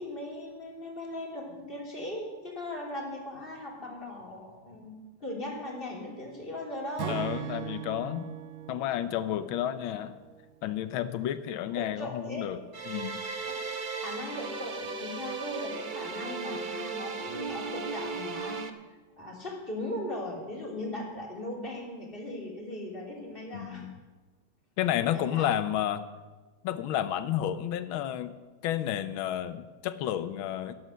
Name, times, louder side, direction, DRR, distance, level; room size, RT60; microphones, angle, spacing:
voice 1, 0.0-4.9 5.2-7.6 11.7-12.5 14.0-18.6 19.2-23.9 25.1-25.5, left 1 dB, 25° left, -2 dB, 3.2 m, -38 dB
Acoustic guitar / Strum, 7.0-10.4, right 11 dB, 90° right, 1.6 m, -39 dB
voice 2, 7.1-8.3 8.7-10.1 10.6-12.6 12.9-13.2 23.5-23.9 24.8-26.0 26.6-28.3 28.6-30.7, left 11 dB, 90° left, 12 dB, 1.5 m, -31 dB
sound 1, 12.7-18.7, right 4 dB, 50° right, 0.5 m, -36 dB
12.5 x 12.0 x 6.2 m, 1.3 s
omnidirectional pair, 2.2 m